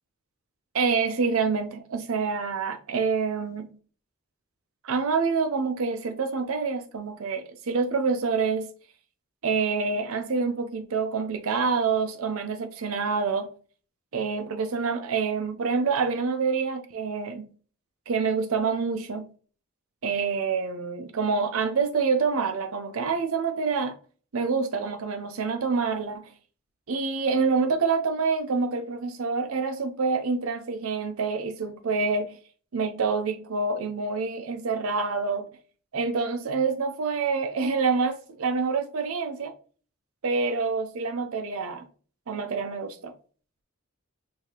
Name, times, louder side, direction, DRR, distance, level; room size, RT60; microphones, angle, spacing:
voice 1, 0.7-3.7 4.8-8.7 9.4-13.5 14.1-17.5 18.1-19.3 20.0-24.0 24.3-26.3 26.9-32.3 32.7-35.5 35.9-39.5 40.2-41.9 42.3-43.1, right 4 dB, 80° right, 0.6 m, -27 dB
4.7 x 2.7 x 2.9 m
head